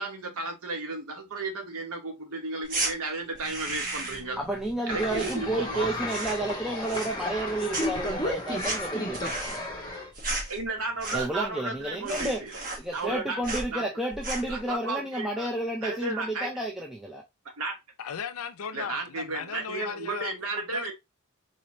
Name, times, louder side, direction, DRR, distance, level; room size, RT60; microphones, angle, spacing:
voice 1, 0.0-4.4 4.9-5.9 10.5-12.6 12.9-13.9 14.5-15.5 15.8-16.5 17.6-17.8 18.7-20.9, right 3 dB, 80° right, 1.1 m, -33 dB
sound 1, 2.6-2.9 3.3-4.3 4.6-5.8 6.0-6.5 6.8-7.4 7.7-11.5 11.8-11.9 12.1-13.2 13.4-13.7 14.1-14.6, right 2 dB, 40° right, 1.2 m, -34 dB
sound 2, 3.2-8.7 9.3-11.1, equal, 35° left, 1.0 m, -52 dB
voice 2, 4.4-9.6 11.1-12.4 12.8-17.2, right 1 dB, ahead, 0.4 m, -31 dB
sound 3, 4.9-10.1, left 1 dB, 20° left, 1.2 m, -33 dB
voice 3, 18.0-20.3 20.7-20.9, left 6 dB, 80° left, 0.5 m, -36 dB
4.1 x 2.6 x 3.1 m
head